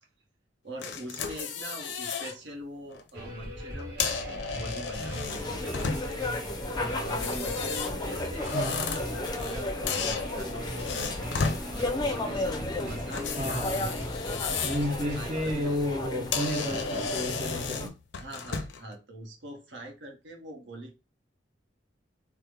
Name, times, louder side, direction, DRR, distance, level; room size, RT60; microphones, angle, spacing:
voice 1, 0.6-5.8 6.8-11.2 12.0-14.1 14.7-15.8 18.2-21.0, right 1 dB, 80° right, 1.0 m, -43 dB
sound 1, 0.8-2.4 2.8-3.0 3.8-6.3 7.0-9.6 9.9-11.6 13.1-14.9 15.3-15.5 16.0-16.1 16.3-18.9, left 5 dB, 75° left, 0.5 m, -34 dB
sound 2, 3.1-15.6, equal, 60° right, 1.2 m, -39 dB
sound 3, 5.3-17.9, left 2 dB, 25° left, 0.4 m, -34 dB
voice 2, 8.5-8.8 13.4-13.9 14.6-17.9, equal, 35° right, 0.5 m, -31 dB
3.4 x 2.0 x 3.2 m
head